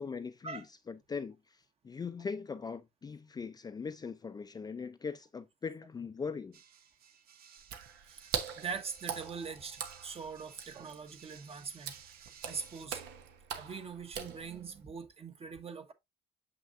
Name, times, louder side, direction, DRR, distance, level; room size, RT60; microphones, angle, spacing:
voice 1, 0.0-1.4 1.8-6.6, left 5 dB, 25° left, 0.5 m, -40 dB
sound 1, 6.5-12.9, right 8 dB, 60° right, 1.0 m, -57 dB
Water / Splash splatter, 7.6-14.8, right 8 dB, 85° right, 1.1 m, -42 dB
voice 2, 8.6-11.9 12.4-13.0 13.6-15.9, right 5 dB, 35° right, 1.1 m, -42 dB
6.6 x 5.8 x 2.5 m
cardioid pair, 110°, 17 cm